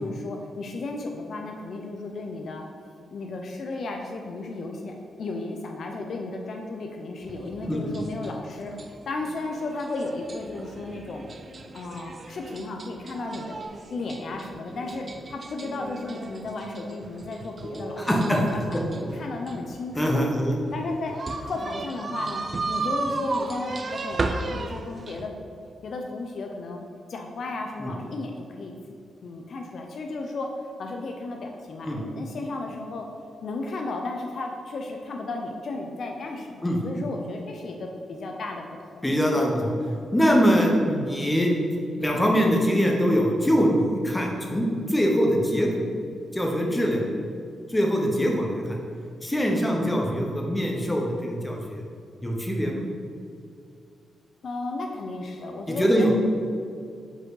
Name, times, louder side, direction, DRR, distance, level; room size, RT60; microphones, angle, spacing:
voice 1, 0.0-2.7 3.1-8.7 9.1-11.3 11.7-20.3 20.7-21.1 21.4-25.3 25.8-26.8 27.1-28.8 29.2-30.5 30.8-33.1 33.4-39.1 54.4-56.1, left 2 dB, 55° left, 2 dB, 0.5 m, -34 dB
sound 1, 7.3-25.3, right 3 dB, 35° right, 0.4 m, -35 dB
voice 2, 7.7-8.0 18.0-18.4 20.0-20.6 27.8-27.9 31.8-32.0 36.6-36.8 39.0-39.8 40.1-41.5 42.0-45.7 46.3-47.0 47.7-48.8 49.2-51.8 52.2-52.8 55.7-56.1, equal, 10° left, 0 dB, 0.8 m, -23 dB
4.9 x 4.4 x 4.8 m, 2.3 s
cardioid pair, 120°, 0 cm